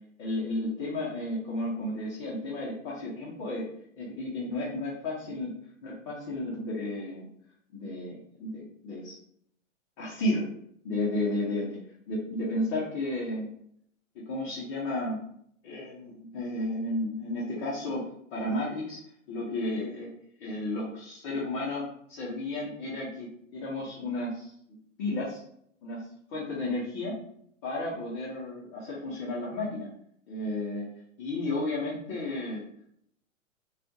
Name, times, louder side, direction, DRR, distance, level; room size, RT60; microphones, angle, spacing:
voice 1, 0.2-3.6 4.0-5.5 5.8-7.3 7.7-9.1 10.0-10.5 10.8-11.8 12.1-13.5 14.3-15.2 15.6-18.0 18.3-19.0 19.3-20.1 20.4-23.3 23.5-24.5 25.0-25.4 25.8-27.1 27.6-29.9 30.3-30.8 31.2-32.6, left 1 dB, 35° left, -6 dB, 0.7 m, -33 dB
2.4 x 2.3 x 2.6 m, 0.69 s
hypercardioid pair, 125°, 40 cm